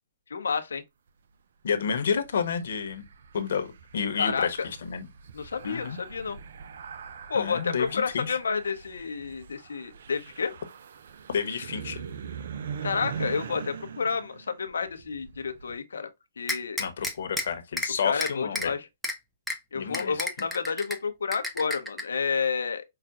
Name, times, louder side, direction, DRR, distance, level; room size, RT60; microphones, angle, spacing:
voice 1, 0.3-0.8 4.2-4.7 5.3-6.4 7.3-10.5 12.8-16.1 16.4-16.8 18.0-18.9 19.7-22.8, left 5 dB, 90° left, 0.8 m, -30 dB
voice 2, 1.6-3.0 3.3-5.1 5.6-6.0 7.3-8.4 11.3-12.0 16.8-18.7 19.7-20.2, left 6 dB, 70° left, 1.1 m, -30 dB
sound 1, 1.9-15.8, right 7 dB, 70° right, 0.5 m, -42 dB
sound 2, 16.5-17.4 17.8-17.9 18.2-18.7 19.0-19.1 19.5-19.6 19.9-21.0 21.3-22.0, left 1 dB, 5° right, 0.7 m, -30 dB
5.7 x 2.4 x 2.4 m
hypercardioid pair, 145°, 0 cm